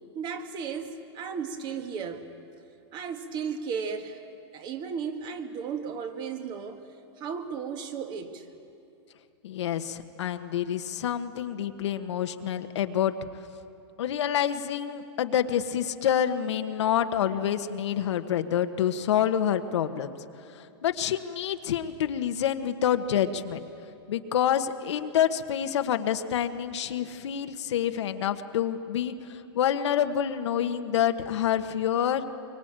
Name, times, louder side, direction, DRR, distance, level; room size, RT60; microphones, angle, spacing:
voice 1, 0.1-2.2 2.9-4.2 4.5-6.8 7.2-8.5, right 6 dB, 30° right, 7 dB, 1.8 m, -34 dB
voice 2, 9.4-13.1 14.0-20.1 20.5-23.6 24.1-32.2, left 9 dB, 80° left, 8 dB, 1.4 m, -27 dB
24.0 x 23.5 x 8.9 m, 2.7 s
supercardioid pair, 145°, 15 cm